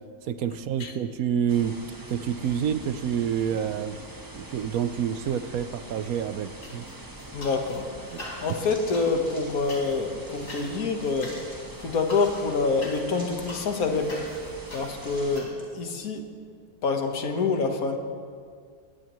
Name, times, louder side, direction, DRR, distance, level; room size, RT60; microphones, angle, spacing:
voice 1, 0.3-1.7 2.1-4.0 4.3-6.8 8.1-8.2, right 8 dB, 70° right, 12 dB, 1.1 m, -28 dB
sound 1, 1.5-15.4, right 1 dB, 15° right, 1.0 m, -43 dB
sound 2, 6.6-7.8 8.1-15.5, left 1 dB, 85° left, 4.6 m, -44 dB
voice 2, 7.3-11.3 11.8-14.2 14.7-16.3 16.8-18.0, left 4 dB, 65° left, 4 dB, 1.8 m, -27 dB
sound 3, 8.5-10.6 11.0-11.7 12.1-12.7 13.1-13.8 14.1-14.6 15.0-15.7, equal, 15° left, 5.0 m, -50 dB
24.0 x 19.0 x 3.2 m, 2.1 s
omnidirectional pair, 1.7 m